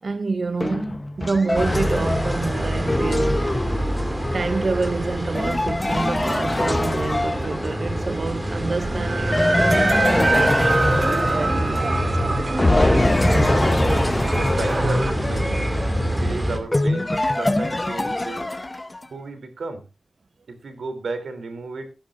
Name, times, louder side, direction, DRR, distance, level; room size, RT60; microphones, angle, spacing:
voice 1, 0.0-3.5 4.3-10.6 11.0-12.4, right 3 dB, 45° right, 0.5 m, -28 dB
sound 1, 0.6-8.0 9.3-12.2 12.6-19.1, left 2 dB, 20° left, 0.9 m, -24 dB
sound 2, 1.5-16.6, equal, 10° right, 2.4 m, -26 dB
sound 3, 8.5-15.1, right 3 dB, 30° right, 1.3 m, -25 dB
voice 2, 13.3-13.9 14.2-15.8 16.2-18.4 19.1-19.8 20.5-21.9, right 3 dB, 90° right, 3.2 m, -33 dB
20.0 x 10.5 x 2.6 m
wide cardioid pair, 135°, 0 cm